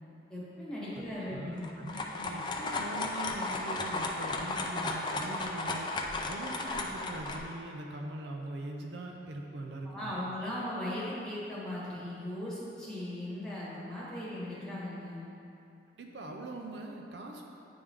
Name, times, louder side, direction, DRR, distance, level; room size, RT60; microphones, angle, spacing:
voice 1, 0.3-1.7 9.8-15.3, left 1 dB, 5° left, -9 dB, 1.4 m, -38 dB
voice 2, 1.0-5.9 6.3-10.2 16.0-17.5, right 2 dB, 75° right, 1 dB, 0.5 m, -42 dB
sound 1, 1.6-7.4, left 2 dB, 25° left, 0.4 m, -34 dB
9.5 x 3.6 x 3.4 m, 2.7 s
head